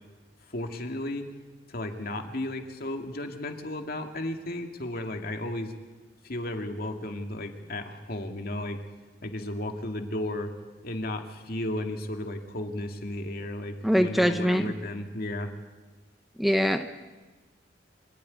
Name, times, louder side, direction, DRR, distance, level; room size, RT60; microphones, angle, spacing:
voice 1, 0.5-1.2 1.7-5.7 6.2-8.8 9.2-10.5 10.8-15.5, left 1 dB, 55° left, 4 dB, 2.2 m, -34 dB
voice 2, 13.8-14.7 16.4-16.9, equal, ahead, 8 dB, 0.8 m, -23 dB
25.5 x 13.5 x 9.9 m, 1.2 s
head